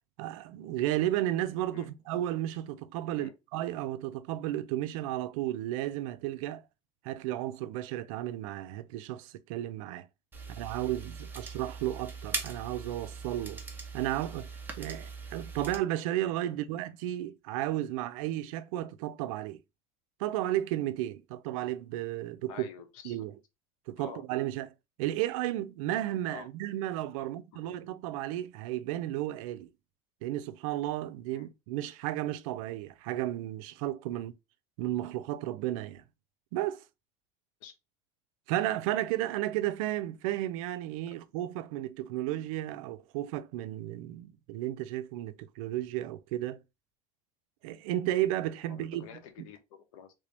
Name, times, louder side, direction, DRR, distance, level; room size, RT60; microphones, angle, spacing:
voice 1, 0.2-6.6 7.0-10.1 10.5-13.6 13.9-14.5 14.8-19.6 20.2-22.7 23.0-23.3 23.9-24.7 25.0-29.7 30.2-34.3 34.8-36.0 36.5-36.8 38.5-46.6 47.6-49.1 49.4-49.5, right 14 dB, 80° right, 0.4 m, -33 dB
sound 1, 10.3-15.8, right 4 dB, 10° right, 0.7 m, -41 dB
voice 2, 22.5-23.2 24.0-24.2 26.3-26.5 27.2-27.3 27.6-27.8 31.3-31.5 34.1-34.2 37.6-37.7 41.1-41.2 48.7-50.1, left 8 dB, 85° left, 0.9 m, -48 dB
3.3 x 2.6 x 3.3 m
supercardioid pair, 140°, 17 cm